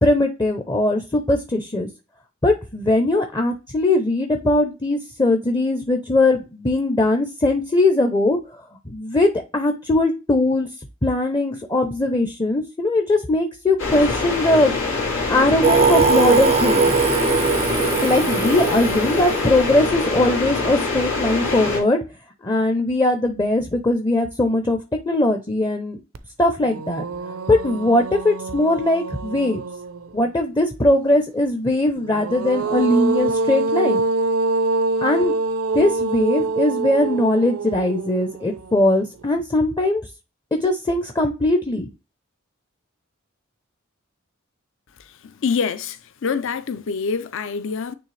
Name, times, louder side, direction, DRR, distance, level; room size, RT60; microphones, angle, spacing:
voice 1, 0.0-1.9 2.4-8.4 8.9-10.7 11.0-14.8 15.3-17.0 18.0-22.0 22.4-24.8 25.1-26.0 26.4-27.0 27.5-29.6 30.1-34.0 35.0-35.3 35.7-40.0 40.5-41.9, left 2 dB, 20° left, 0.6 m, -20 dB
sound 1, 13.8-21.8, left 3 dB, 85° left, 2.5 m, -24 dB
Singing, 15.6-20.4, right 5 dB, 30° right, 0.4 m, -20 dB
sound 2, 26.1-26.2 26.6-30.3 32.0-39.2, right 2 dB, 85° right, 0.6 m, -25 dB
voice 2, 45.4-47.9, left 5 dB, 65° left, 0.5 m, -25 dB
9.3 x 3.2 x 3.2 m
head